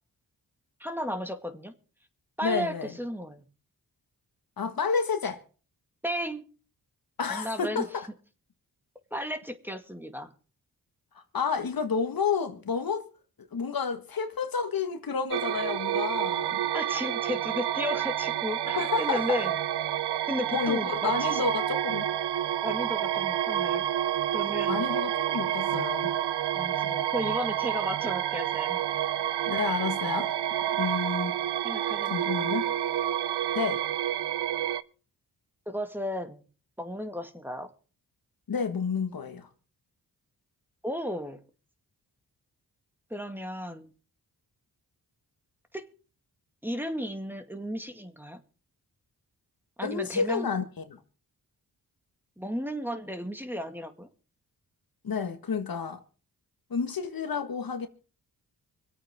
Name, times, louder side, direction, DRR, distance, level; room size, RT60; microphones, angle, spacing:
voice 1, 0.8-1.7 2.4-3.4 6.0-6.4 7.3-7.9 9.1-10.3 16.7-19.5 20.3-21.4 22.6-23.8 24.3-24.8 26.5-28.8 30.7-31.0 31.6-32.4 35.7-36.4 36.8-37.7 40.8-41.4 43.1-43.9 45.7-45.9 46.6-48.4 49.8-50.5 52.4-54.1, equal, 5° right, 2.1 m, -34 dB
voice 2, 2.4-2.9 4.6-5.4 7.2-8.1 11.3-13.1 13.5-16.6 18.7-19.4 20.5-22.1 24.7-26.1 29.5-30.3 30.8-31.3 32.1-32.7 33.6-33.8 38.5-39.5 49.8-51.0 55.0-56.0 56.7-57.9, left 5 dB, 60° left, 1.7 m, -30 dB
sound 1, 15.3-34.8, right 11 dB, 80° right, 0.7 m, -29 dB
25.0 x 8.7 x 3.7 m
cardioid pair, 50°, 40 cm